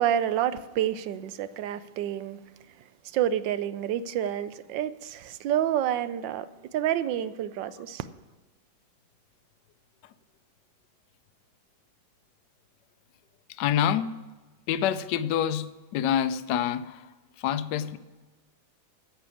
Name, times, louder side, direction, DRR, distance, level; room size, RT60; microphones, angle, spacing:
voice 1, 0.0-2.4 3.0-8.1, right 11 dB, 75° right, 1.2 m, -28 dB
voice 2, 13.6-14.2 14.7-17.1 17.4-18.0, left 9 dB, 70° left, 1.1 m, -27 dB
10.0 x 6.8 x 8.4 m
omnidirectional pair, 2.2 m